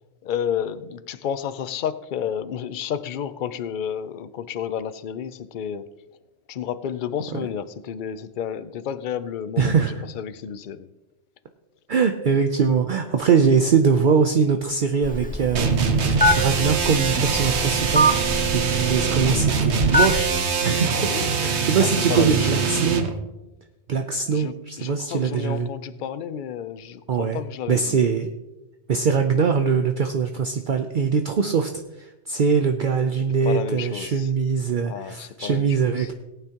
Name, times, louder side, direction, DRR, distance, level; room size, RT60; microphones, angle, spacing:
voice 1, 0.2-5.9 6.5-10.9 20.9-21.3 21.8-22.7 24.3-28.0 33.4-34.3 34.8-36.1, left 8 dB, 55° left, 13 dB, 0.7 m, -31 dB
voice 2, 9.6-10.0 11.9-20.3 20.6-21.1 21.4-23.1 23.9-25.7 27.1-27.4 27.7-28.3 28.9-31.7 32.0-36.1, right 6 dB, 55° right, 6 dB, 0.7 m, -22 dB
Telephone, 15.0-20.4, equal, 10° left, 0.4 m, -24 dB
sound 1, 15.5-23.2, right 5 dB, 85° right, 1.2 m, -23 dB
18.0 x 9.0 x 2.9 m, 1.0 s
omnidirectional pair, 1.1 m